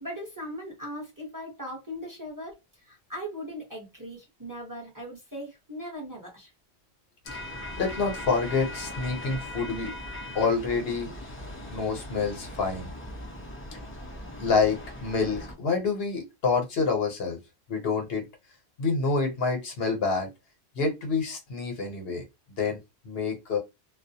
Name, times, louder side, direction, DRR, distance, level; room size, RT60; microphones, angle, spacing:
voice 1, 0.0-2.6 2.8-6.5, equal, 20° right, 0.8 m, -39 dB
sound 1, 7.2-15.5, left 1 dB, 20° left, 0.3 m, -39 dB
voice 2, 7.8-9.9 10.3-11.1 11.7-12.9 14.4-17.4 17.7-18.2 18.8-20.3 20.8-22.2 22.6-22.8 23.0-23.6, left 4 dB, 70° left, 0.9 m, -27 dB
2.3 x 2.1 x 2.6 m
omnidirectional pair, 1.1 m